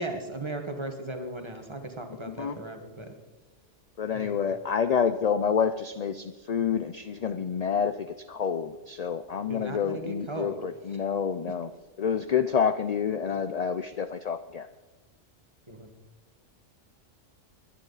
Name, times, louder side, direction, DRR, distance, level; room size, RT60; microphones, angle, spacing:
voice 1, 0.0-3.2 4.1-4.3 9.5-10.6 10.9-11.0 15.7-15.9, right 1 dB, 25° right, 5 dB, 1.4 m, -36 dB
voice 2, 2.2-2.6 4.0-11.7 12.0-14.7, left 7 dB, 55° left, 10 dB, 0.4 m, -28 dB
20.5 x 10.5 x 4.0 m, 1.3 s
omnidirectional pair, 1.2 m